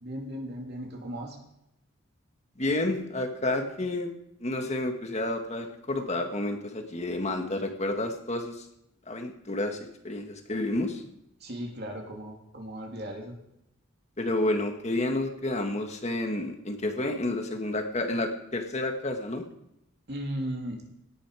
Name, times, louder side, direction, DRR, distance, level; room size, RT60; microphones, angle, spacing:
voice 1, 0.0-1.4 11.4-13.3 20.1-20.8, equal, 50° right, 1 dB, 3.0 m, -36 dB
voice 2, 2.6-4.1 4.4-8.6 9.1-9.8 10.0-11.0 14.2-19.4, left 2 dB, 30° left, 4 dB, 1.8 m, -30 dB
18.0 x 10.0 x 5.0 m, 0.82 s
head